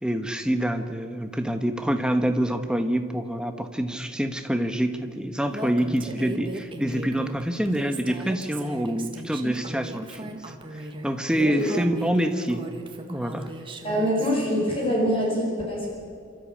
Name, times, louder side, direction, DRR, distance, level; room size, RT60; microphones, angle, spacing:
voice 1, 0.0-12.6 13.1-13.5, right 1 dB, 5° right, 7 dB, 1.2 m, -26 dB
Female speech woman speaking, 5.5-14.4, right 1 dB, 25° right, 1.7 m, -37 dB
voice 2, 13.8-15.9, equal, 25° left, -3 dB, 5.0 m, -24 dB
27.5 x 13.5 x 8.6 m, 2.4 s
head